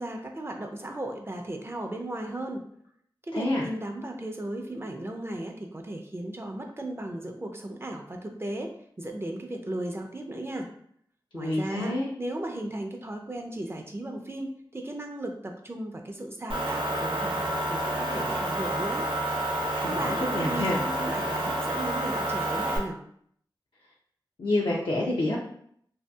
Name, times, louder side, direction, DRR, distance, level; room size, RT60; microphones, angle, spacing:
voice 1, 0.0-2.6 3.3-10.7 11.3-19.1 19.8-23.0, right 1 dB, 30° right, 3 dB, 0.4 m, -36 dB
voice 2, 3.3-3.7 11.3-12.1 19.7-20.8 24.4-25.4, left 1 dB, 70° left, -4 dB, 0.4 m, -28 dB
Motor vehicle (road) / Engine, 16.5-22.8, right 1 dB, 80° right, 0.5 m, -29 dB
2.6 x 2.3 x 2.3 m, 0.65 s
cardioid pair, 40°, 9 cm